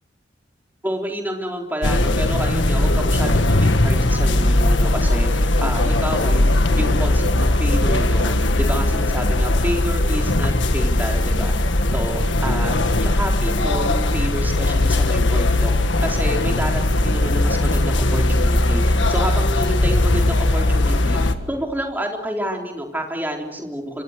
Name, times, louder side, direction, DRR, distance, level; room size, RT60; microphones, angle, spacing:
voice 1, 0.8-11.5 11.9-15.7 16.0-24.0, equal, 10° right, 1 dB, 3.8 m, -29 dB
sound 1, 1.8-21.3, left 1 dB, 70° left, 1.7 m, -19 dB
27.0 x 26.0 x 6.6 m, 1.0 s
head